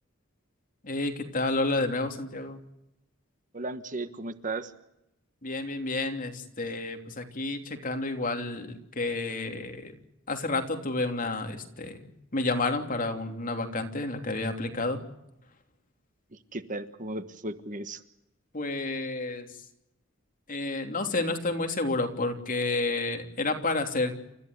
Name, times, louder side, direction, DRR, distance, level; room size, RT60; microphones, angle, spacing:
voice 1, 0.8-2.6 5.4-10.0 10.3-15.0 18.5-19.5 20.5-24.1, left 2 dB, 40° left, 5 dB, 3.1 m, -30 dB
voice 2, 3.5-4.7 16.3-18.0, right 2 dB, 40° right, 10 dB, 1.4 m, -35 dB
29.5 x 14.5 x 9.8 m, 0.85 s
head